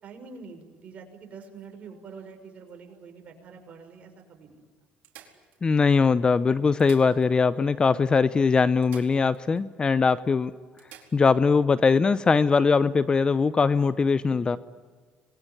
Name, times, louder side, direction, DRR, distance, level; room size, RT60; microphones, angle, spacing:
voice 1, 0.0-4.6 14.3-14.6, right 5 dB, 45° right, 4 dB, 6.0 m, -46 dB
sound 1, 1.5-3.2 3.8-3.9 4.2-4.3 5.0-6.0 6.6-7.6 7.9-8.0 8.8-9.7 10.0-10.1 10.8-11.4 13.3-13.5, right 10 dB, 70° right, 4.5 m, -53 dB
voice 2, 5.6-10.5 11.1-14.6, left 5 dB, 30° left, 15 dB, 0.8 m, -21 dB
26.0 x 22.0 x 10.0 m, 1.5 s
supercardioid pair, 90°, 3 cm